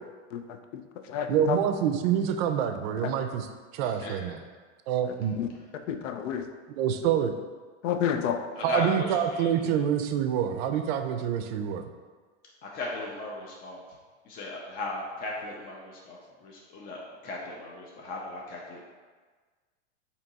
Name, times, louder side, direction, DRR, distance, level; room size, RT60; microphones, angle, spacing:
voice 1, 0.3-0.8 1.1-1.6 3.0-3.1 5.0-5.5 5.9-6.5 7.8-8.4, left 8 dB, 85° left, 7 dB, 0.5 m, -30 dB
voice 2, 1.3-3.5 3.7-4.4 4.9-5.4 6.8-7.4 8.6-11.8, right 8 dB, 55° right, 7 dB, 0.5 m, -26 dB
voice 3, 8.7-9.1 9.4-9.5 12.7-13.8 14.3-17.0 17.2-18.8, left 2 dB, 25° left, -3 dB, 0.4 m, -36 dB
3.4 x 2.8 x 4.0 m, 1.4 s
supercardioid pair, 135°, 36 cm